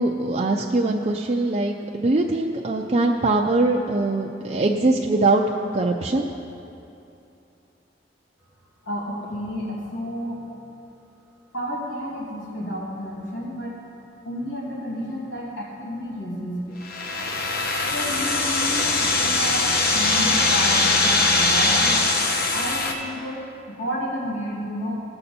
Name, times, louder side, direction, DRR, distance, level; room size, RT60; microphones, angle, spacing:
voice 1, 0.0-5.4 5.7-6.3, right 2 dB, 35° right, 0 dB, 0.5 m, -22 dB
voice 2, 8.8-10.4 11.5-13.8 14.2-16.8 17.9-22.0 22.5-23.4 23.7-24.9, equal, 85° left, -5 dB, 2.6 m, -31 dB
sound 1, 16.8-22.9, left 3 dB, 55° left, 1.1 m, -21 dB
17.5 x 6.7 x 4.3 m, 2.8 s
head